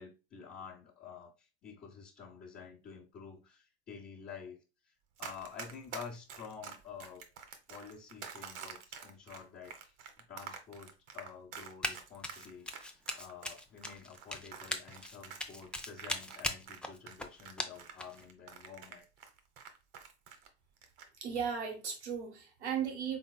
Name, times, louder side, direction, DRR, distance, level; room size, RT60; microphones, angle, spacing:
voice 1, 0.0-4.6 4.8-4.9 5.2-7.2 7.7-9.9 10.3-19.1, left 6 dB, 30° left, 1.1 m, -49 dB
Run, 5.2-16.8 17.1-20.5 20.8-21.1, right 7 dB, 55° right, 1.1 m, -47 dB
Run 2, 11.8-12.0 12.2-18.2, left 2 dB, 5° left, 0.3 m, -39 dB
voice 2, 21.2-23.2, right 7 dB, 80° right, 1.3 m, -36 dB
3.9 x 3.9 x 2.2 m
hypercardioid pair, 90°, 33 cm